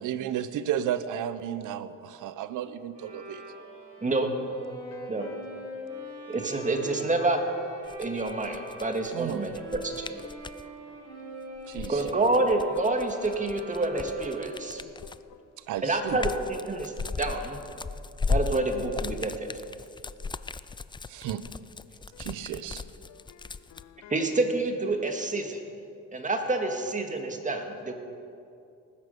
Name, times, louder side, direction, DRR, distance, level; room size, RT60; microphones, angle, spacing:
voice 1, 0.0-3.4 9.1-9.4 11.7-12.0 15.7-16.2 21.1-21.4 22.2-22.8, right 10 dB, 85° right, 0.8 m, -33 dB
Bowed string instrument, 2.9-14.8, right 1 dB, 70° right, 4.4 m, -43 dB
voice 2, 4.7-5.4 5.7-5.9 6.2-6.3 10.2-11.1 11.8-11.9 14.8-15.4 22.1-22.4 23.0-24.2, left 11 dB, 60° left, 0.6 m, -51 dB
voice 3, 6.3-7.4 8.0-10.1 11.9-14.8 15.8-16.9 17.2-17.6 18.3-19.5 24.1-25.6 26.1-27.9, right 2 dB, 25° right, 2.0 m, -28 dB
sound 1, 7.8-10.6 11.6-15.3 15.8-23.8, left 4 dB, 15° left, 0.4 m, -36 dB
18.5 x 9.8 x 6.9 m
cardioid pair, 90°, 30 cm